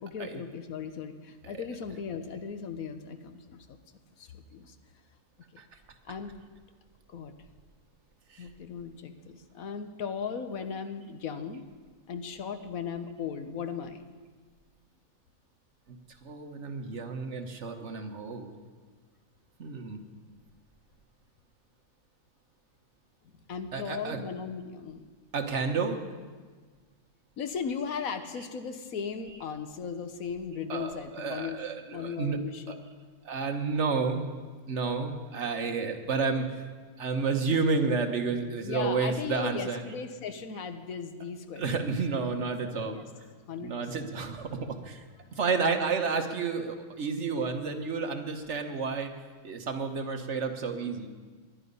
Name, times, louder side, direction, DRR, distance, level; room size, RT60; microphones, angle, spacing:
voice 1, 0.0-3.8 4.2-4.8 6.0-6.3 7.1-7.3 8.4-11.6 12.1-14.0 23.5-25.1 27.4-31.6 31.9-32.8 38.6-41.7 42.8-43.1 43.5-44.0, left 6 dB, 75° left, 9 dB, 1.4 m, -37 dB
voice 2, 1.4-1.8 5.6-5.7 8.3-8.5 16.2-18.5 19.6-20.0 23.7-24.2 25.3-26.0 30.7-32.4 32.7-32.8 33.2-34.3 34.7-36.6 37.0-39.9 41.6-43.0 43.6-45.0 45.3-49.1 49.4-51.1, right 4 dB, 55° right, 5 dB, 1.5 m, -31 dB
20.5 x 11.5 x 5.4 m, 1.5 s
omnidirectional pair, 1.5 m